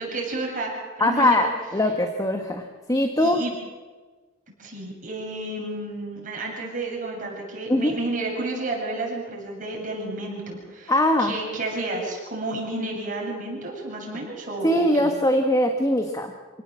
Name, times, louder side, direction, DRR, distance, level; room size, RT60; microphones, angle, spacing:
voice 1, 0.0-1.5 3.1-3.5 4.6-10.9 11.2-15.1, right 2 dB, 45° right, -2 dB, 8.0 m, -31 dB
voice 2, 1.0-3.4 7.7-7.9 10.9-11.3 14.6-16.3, left 1 dB, 20° left, 5 dB, 1.5 m, -21 dB
28.0 x 18.0 x 7.6 m, 1.3 s
head